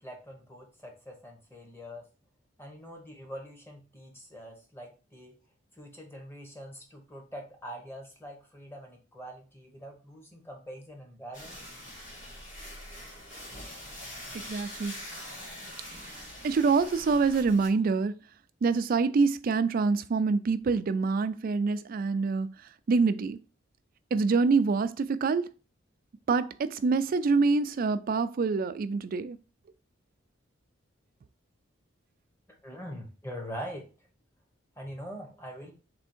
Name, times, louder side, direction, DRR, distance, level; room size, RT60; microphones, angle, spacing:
voice 1, 0.0-2.0 2.6-5.3 5.8-11.6 32.6-33.9 34.8-35.7, equal, 10° left, 1.1 m, -43 dB
sound 1, 11.3-17.7, left 1 dB, 45° left, 1.7 m, -44 dB
voice 2, 14.3-14.9 16.4-18.1 18.6-22.5 22.9-23.4 24.1-25.5 26.3-29.4, right 4 dB, 50° right, 0.3 m, -26 dB
3.4 x 3.4 x 4.3 m
head